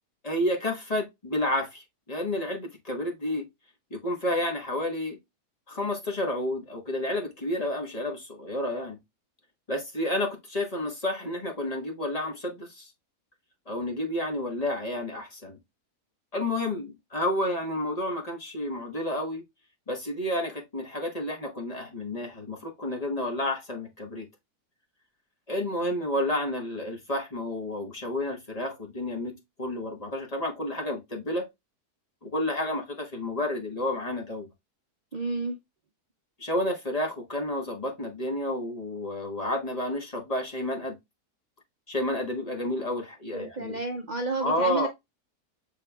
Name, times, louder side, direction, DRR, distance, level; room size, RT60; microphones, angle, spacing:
voice 1, 0.2-3.4 3.9-5.2 5.7-9.0 9.7-12.9 13.7-15.6 16.3-19.4 19.9-24.3 25.5-31.5 32.2-34.5 36.4-41.0 41.9-43.8 44.4-44.9, left 1 dB, 30° left, 1.0 m, -30 dB
voice 2, 35.1-35.6 43.3-44.9, right 3 dB, 50° right, 0.5 m, -31 dB
6.7 x 3.4 x 2.2 m
omnidirectional pair, 1.7 m